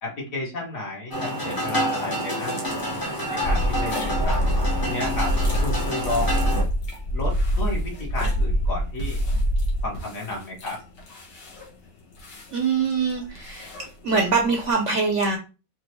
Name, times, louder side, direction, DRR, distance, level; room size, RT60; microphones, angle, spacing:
voice 1, 0.0-2.8 3.3-4.4 4.8-5.3 5.6-6.6 7.1-9.2 9.8-10.8, left 2 dB, 55° left, -2 dB, 1.7 m, -32 dB
sound 1, 1.1-6.6, right 1 dB, 20° left, 0.6 m, -28 dB
sound 2, 2.6-14.7, equal, 85° left, 1.8 m, -39 dB
sound 3, 3.4-9.9, equal, 70° left, 0.6 m, -24 dB
voice 2, 12.5-13.7 14.0-15.4, right 4 dB, 65° right, 2 dB, 0.8 m, -23 dB
4.6 x 2.8 x 3.0 m, 0.31 s
omnidirectional pair, 1.8 m